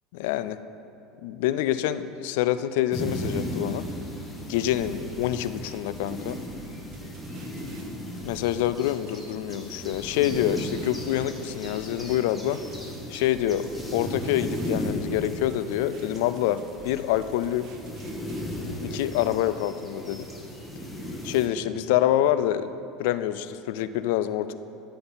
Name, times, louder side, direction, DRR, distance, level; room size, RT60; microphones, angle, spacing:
voice 1, 0.1-0.6 1.2-3.9 4.5-6.4 8.2-12.6 13.1-17.7 18.8-20.3 21.2-22.7 23.0-24.5, left 12 dB, 75° left, 13 dB, 0.4 m, -26 dB
sound 1, 2.9-21.5, left 1 dB, 10° left, 1.5 m, -36 dB
sound 2, 4.8-18.5, right 5 dB, 65° right, 0.7 m, -51 dB
13.5 x 5.8 x 4.0 m, 2.7 s
supercardioid pair, 110°, 0 cm